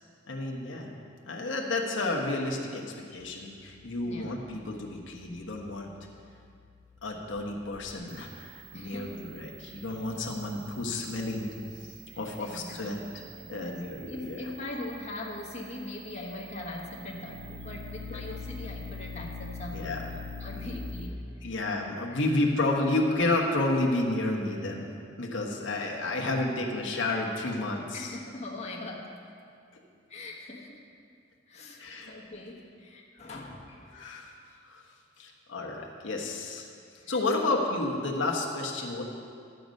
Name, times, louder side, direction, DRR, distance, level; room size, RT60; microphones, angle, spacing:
voice 1, 0.3-0.9 1.3-5.9 7.0-11.5 11.8-13.0 13.5-14.4 19.7-20.1 20.6-20.7 21.4-24.9 25.2-28.1 31.8-32.1 33.9-34.3 34.6-34.8 35.2-36.7 37.1-39.0, left 2 dB, 80° left, 0 dB, 1.2 m, -31 dB
sound 1, 3.2-21.1, left 2 dB, 40° right, 0.7 m, -45 dB
voice 2, 4.0-4.3 8.7-9.3 9.8-9.9 12.1-13.8 14.1-20.1 20.4-21.6 22.1-22.3 27.9-29.1 30.1-30.9 31.5-34.2 37.0-37.6, left 2 dB, 35° left, -2 dB, 1.2 m, -42 dB
12.0 x 7.9 x 5.3 m, 2.3 s
head